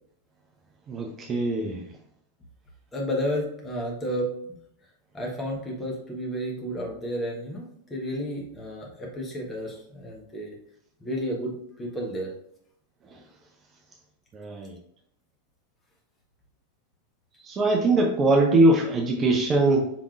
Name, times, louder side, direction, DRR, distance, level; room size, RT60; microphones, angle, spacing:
voice 1, 0.9-1.8 14.3-14.7 17.4-19.9, right 2 dB, 25° right, 1 dB, 0.6 m, -22 dB
voice 2, 2.9-4.3 5.1-7.6 7.9-10.6 11.0-12.3, equal, 15° left, -1 dB, 1.2 m, -31 dB
4.8 x 3.5 x 2.4 m, 0.71 s
figure-of-eight pair, 90°, 0 cm